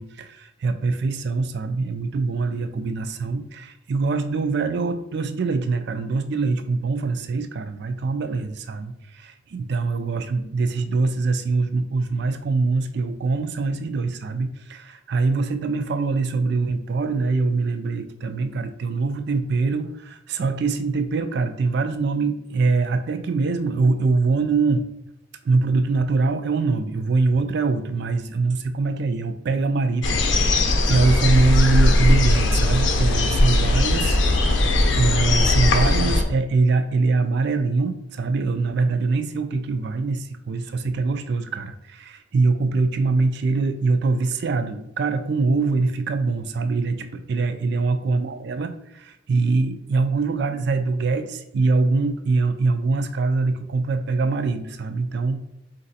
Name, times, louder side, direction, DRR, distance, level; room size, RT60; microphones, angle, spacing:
voice 1, 0.0-24.9 25.4-34.2 34.7-55.5, right 3 dB, 60° right, 9 dB, 0.4 m, -23 dB
sound 1, 30.0-36.2, left 2 dB, 70° left, 0.6 m, -19 dB
4.0 x 2.6 x 4.0 m, 0.82 s
head